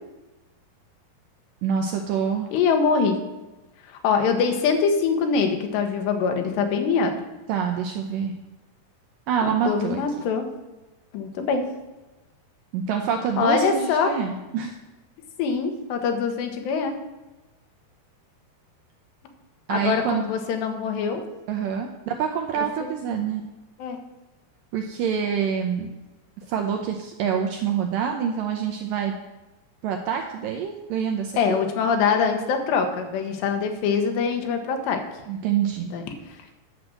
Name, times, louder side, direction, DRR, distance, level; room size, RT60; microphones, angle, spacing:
voice 1, 1.6-2.5 7.5-8.3 9.3-10.0 12.7-14.7 19.7-20.2 21.5-23.4 24.7-25.9 26.5-29.1 29.8-31.6 35.3-35.9, right 7 dB, 80° right, 3 dB, 2.0 m, -26 dB
voice 2, 2.5-3.2 3.9-7.1 9.4-10.5 11.1-11.6 13.4-14.1 15.4-16.9 19.7-21.2 23.8-24.0 31.4-35.0 35.9-36.0, left 5 dB, 85° left, 5 dB, 3.3 m, -23 dB
10.0 x 6.2 x 7.7 m, 1.1 s
omnidirectional pair, 4.8 m